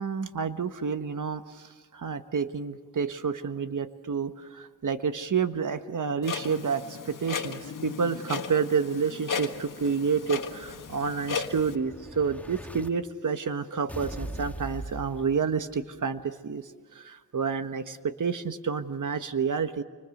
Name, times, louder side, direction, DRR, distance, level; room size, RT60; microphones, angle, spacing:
voice 1, 0.0-19.8, right 6 dB, 60° right, 10 dB, 1.4 m, -29 dB
Clock, 6.2-11.8, left 5 dB, 60° left, 1.7 m, -36 dB
Explosion, 9.5-12.9 13.9-15.9, right 1 dB, 5° left, 2.0 m, -42 dB
30.0 x 25.0 x 6.7 m, 1.5 s
cardioid pair, 60°, 35 cm